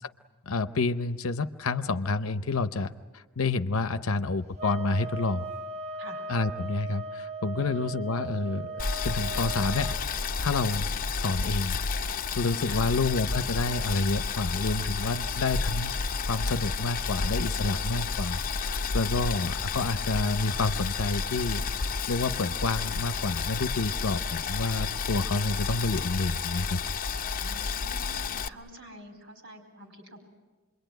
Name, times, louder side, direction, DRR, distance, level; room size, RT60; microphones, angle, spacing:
voice 1, 0.5-5.4 6.3-10.9 11.2-16.0 16.3-26.8, left 3 dB, 75° left, 10 dB, 0.7 m, -29 dB
sound 1, 4.6-10.0, right 2 dB, 30° right, 1.4 m, -38 dB
Boiling, 8.8-28.5, left 5 dB, 40° left, 0.8 m, -31 dB
voice 2, 12.6-12.9 27.4-30.2, right 1 dB, 60° right, 5 dB, 4.6 m, -48 dB
27.0 x 22.5 x 9.2 m, 1.3 s
head